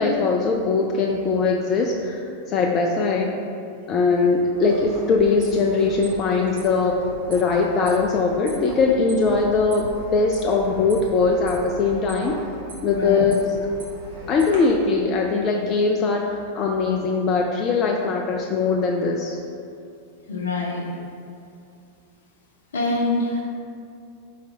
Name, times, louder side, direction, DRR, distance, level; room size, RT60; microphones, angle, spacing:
voice 1, 0.0-3.3 3.9-12.4 12.8-13.6 14.3-19.4, left 4 dB, 30° left, 0 dB, 0.3 m, -21 dB
sound 1, 4.5-14.6, right 2 dB, 60° right, 1.1 m, -39 dB
voice 2, 12.9-13.3 20.3-20.9 22.7-23.4, left 2 dB, 65° left, -1 dB, 0.7 m, -25 dB
4.1 x 3.2 x 3.8 m, 2.4 s
figure-of-eight pair, 90°, 0 cm